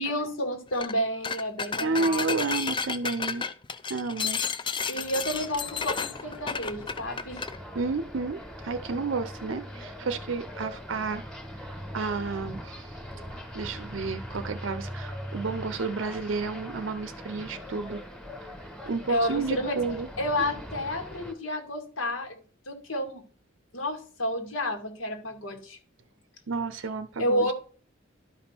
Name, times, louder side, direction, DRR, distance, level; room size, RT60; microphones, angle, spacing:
voice 1, 0.0-2.3 4.9-7.4 19.1-19.7 20.2-22.4 22.7-23.2 23.7-25.8 27.2-27.5, equal, 80° left, 2.1 m, -30 dB
sound 1, 0.7-0.9 1.2-7.6, left 5 dB, 25° left, 0.5 m, -32 dB
voice 2, 1.8-3.4 3.9-4.4 4.9-5.0 7.7-11.2 11.6-13.0 13.5-18.0 18.9-20.1 26.5-27.5, right 4 dB, 70° right, 0.6 m, -31 dB
sound 2, 4.9-21.3, equal, 5° left, 1.6 m, -41 dB
11.5 x 5.3 x 4.4 m
head